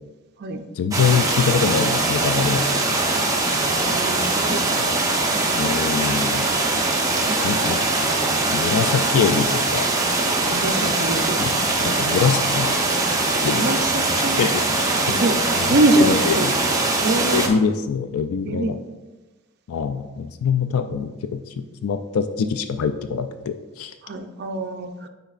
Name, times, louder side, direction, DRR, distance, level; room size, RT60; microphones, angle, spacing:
voice 1, 0.8-2.7 4.7-5.0 5.6-6.5 7.4-8.1 8.5-9.9 11.4-12.8 13.4-13.7 14.2-15.1 15.6-16.5 17.3-18.8 19.7-23.9, left 6 dB, 85° left, 9 dB, 0.4 m, -24 dB
sound 1, 0.9-17.5, right 2 dB, 15° right, 0.7 m, -22 dB
voice 2, 3.9-4.6 5.3-5.5 7.2-7.6 10.5-11.3 13.5-14.4 15.1-15.4 15.7-16.5 17.0-17.5 18.4-18.7 24.0-25.1, right 2 dB, 50° right, 6 dB, 0.5 m, -23 dB
8.9 x 4.6 x 2.4 m, 1.1 s
head